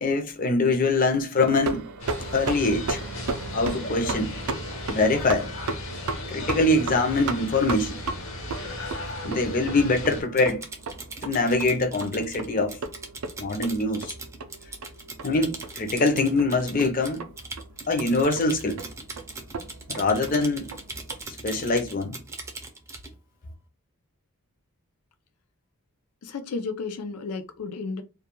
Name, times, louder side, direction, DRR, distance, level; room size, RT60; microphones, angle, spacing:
voice 1, 0.0-1.8 2.3-3.0 3.5-4.3 4.9-5.5 6.3-8.0 9.2-10.6 11.2-12.7 13.4-14.1 15.2-17.2 17.9-18.8 19.9-20.7 21.4-22.2, left 2 dB, 40° left, 0.5 m, -23 dB
sound 1, 1.4-21.2, right 3 dB, 75° right, 0.4 m, -36 dB
sound 2, 2.0-10.2, left 1 dB, 65° left, 0.8 m, -36 dB
Typing, 10.1-23.1, right 3 dB, 15° right, 0.4 m, -40 dB
voice 2, 26.2-28.0, left 4 dB, 90° left, 0.5 m, -33 dB
2.3 x 2.2 x 2.9 m
head